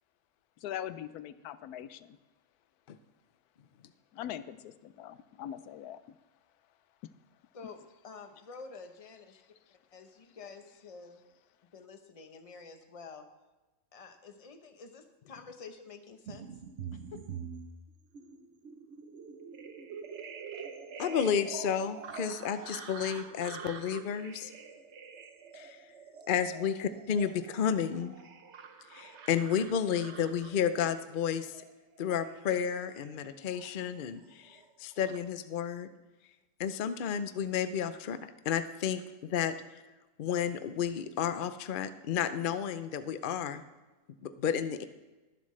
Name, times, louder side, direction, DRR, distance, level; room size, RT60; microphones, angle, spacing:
voice 1, 0.6-2.2 4.1-6.2 7.6-7.7, left 11 dB, 85° left, 14 dB, 1.1 m, -42 dB
voice 2, 7.5-9.4 9.9-11.2 11.7-13.3 13.9-16.4 16.9-17.0, left 4 dB, 30° left, 6 dB, 0.8 m, -49 dB
sound 1, 16.3-34.0 34.3-35.2, right 6 dB, 55° right, 1.0 m, -46 dB
voice 3, 21.0-24.5 25.5-25.8 26.3-28.1 28.9-31.6 32.0-35.9 36.6-38.2 38.5-39.5 40.2-43.6 44.2-44.8, left 8 dB, 65° left, 11 dB, 0.5 m, -32 dB
21.5 x 7.4 x 3.2 m, 1.1 s
omnidirectional pair, 1.6 m